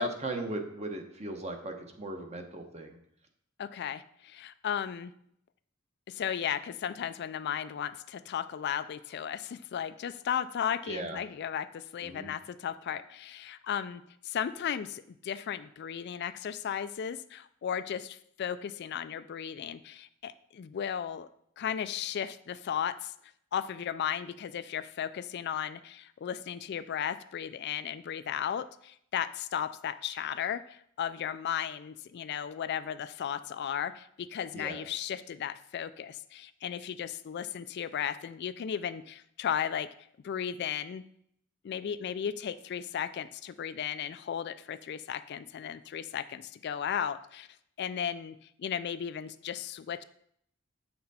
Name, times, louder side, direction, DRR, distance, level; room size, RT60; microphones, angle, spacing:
voice 1, 0.0-3.0 10.8-11.2 12.0-12.3 34.5-34.8, right 2 dB, 30° right, 4 dB, 1.0 m, -37 dB
voice 2, 3.6-5.1 6.1-21.3 21.6-23.1 23.5-39.9 40.2-41.0 41.6-47.5 47.8-50.0, left 8 dB, 55° left, 13 dB, 0.3 m, -35 dB
7.6 x 6.0 x 4.2 m, 0.69 s
head